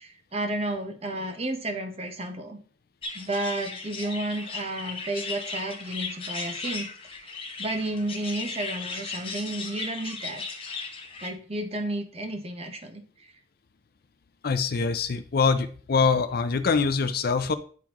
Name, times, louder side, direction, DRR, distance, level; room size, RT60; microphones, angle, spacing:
voice 1, 0.0-2.6 3.1-6.9 7.6-10.4 11.2-13.0, right 1 dB, 35° right, 5 dB, 1.0 m, -32 dB
sound 1, 3.0-11.3, left 4 dB, 30° left, 1.0 m, -36 dB
voice 2, 14.4-17.5, left 5 dB, 55° left, 10 dB, 0.5 m, -24 dB
10.5 x 3.6 x 3.0 m, 0.43 s
head